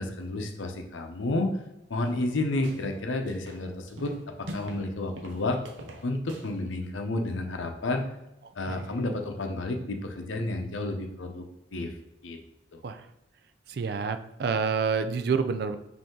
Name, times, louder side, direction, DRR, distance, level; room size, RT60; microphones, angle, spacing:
voice 1, 0.0-1.6 1.9-4.1 4.4-5.6 6.0-8.0 8.6-11.4 11.7-11.9 12.2-12.4 12.7-12.8, left 2 dB, 90° left, 4 dB, 0.7 m, -31 dB
sound 1, 2.0-3.0 3.3-4.9 5.1-6.5, right 1 dB, 80° right, 0.8 m, -43 dB
voice 2, 8.4-9.0 12.8-13.1 13.7-15.8, right 5 dB, 55° right, 10 dB, 0.3 m, -29 dB
5.2 x 2.7 x 3.7 m, 0.87 s
head